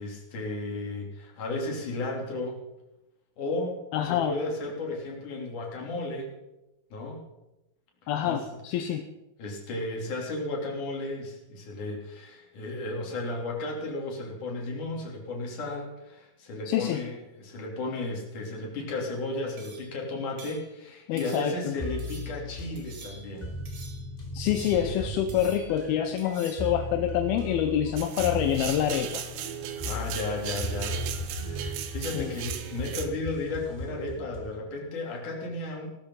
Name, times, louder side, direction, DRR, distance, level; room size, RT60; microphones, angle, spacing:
voice 1, 0.0-2.6 3.4-6.3 6.9-7.2 8.2-8.4 9.4-23.5 29.8-31.0 31.4-35.9, left 2 dB, 50° left, -1 dB, 4.5 m, -34 dB
voice 2, 3.9-4.4 8.1-9.0 16.7-17.0 21.1-21.8 24.3-29.2 32.0-32.5, left 10 dB, 75° left, 7 dB, 2.7 m, -27 dB
sound 1, 19.6-20.0 20.4-20.7 21.2-21.7 22.0-22.4 22.8-23.4 23.7-24.1 24.5-25.0 25.3-25.8 26.2-26.7, right 4 dB, 60° right, 4.8 m, -48 dB
sound 2, 21.8-34.6, equal, 10° left, 2.4 m, -37 dB
sound 3, 28.0-33.1, right 10 dB, 85° right, 3.3 m, -37 dB
18.0 x 13.0 x 5.6 m, 0.94 s
omnidirectional pair, 4.7 m